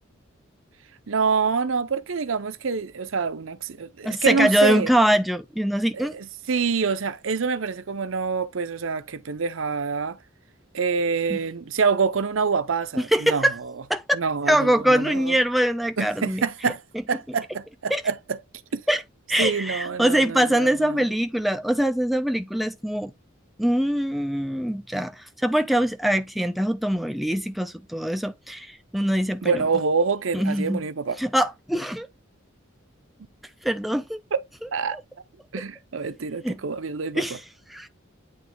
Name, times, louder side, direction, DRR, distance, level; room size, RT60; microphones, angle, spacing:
voice 1, 1.1-4.9 5.9-10.2 10.7-13.5 14.1-15.4 16.0-16.8 17.1-18.4 18.7-18.8 19.4-21.1 29.4-31.2 34.3-34.4 34.7-35.0 35.5-37.2, right 5 dB, 75° right, 0.7 m, -26 dB
voice 2, 4.0-6.2 11.3-11.4 13.0-13.6 13.9-14.0 14.5-16.7 17.9-18.0 18.9-19.0 19.3-23.1 23.6-29.6 30.3-30.8 31.2-32.1 33.6-34.2 34.9-35.0 36.4-36.6 37.2-37.4 37.7-37.9, equal, ahead, 0.4 m, -23 dB
8.8 x 3.1 x 3.6 m
head